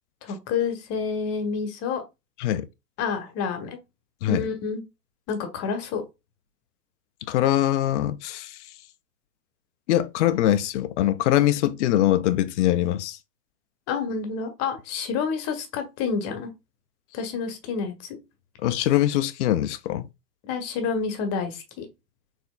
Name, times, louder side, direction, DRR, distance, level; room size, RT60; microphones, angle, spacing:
voice 1, 0.2-2.0 3.0-3.8 4.3-4.8 5.3-6.0 13.9-16.5 17.1-18.2 20.4-21.9, left 5 dB, 30° left, 1.1 m, -29 dB
voice 2, 7.3-8.6 9.9-13.2 18.6-20.1, left 13 dB, 50° left, 0.5 m, -23 dB
4.4 x 3.4 x 2.3 m
hypercardioid pair, 110°, 49 cm